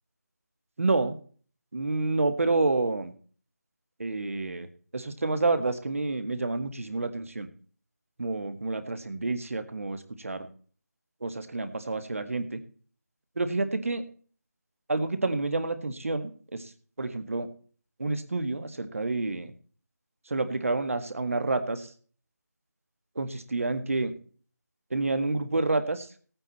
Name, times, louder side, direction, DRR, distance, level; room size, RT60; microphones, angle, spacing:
voice 1, 0.8-1.2 1.7-3.1 4.0-4.7 4.9-7.5 8.2-10.5 11.2-12.6 13.4-14.0 14.9-16.7 17.0-17.5 18.0-19.5 20.3-21.9 23.2-24.1 24.9-26.1, right 3 dB, 50° right, 9 dB, 1.8 m, -29 dB
18.0 x 8.9 x 4.2 m, 0.43 s
figure-of-eight pair, 175°, 9 cm